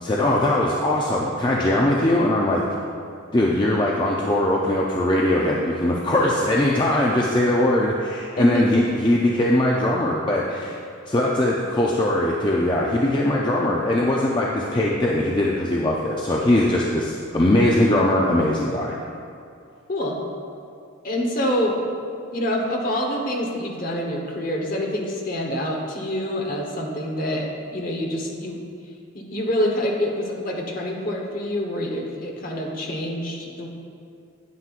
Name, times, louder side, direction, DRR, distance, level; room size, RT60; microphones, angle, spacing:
voice 1, 0.0-2.6 3.3-10.8 11.1-18.9, left 1 dB, 20° left, -3 dB, 0.5 m, -21 dB
voice 2, 8.4-8.8 19.9-20.2 21.0-21.8 22.3-28.6 29.1-33.7, left 1 dB, 45° left, 0 dB, 1.1 m, -26 dB
9.6 x 9.4 x 2.5 m, 2.4 s
head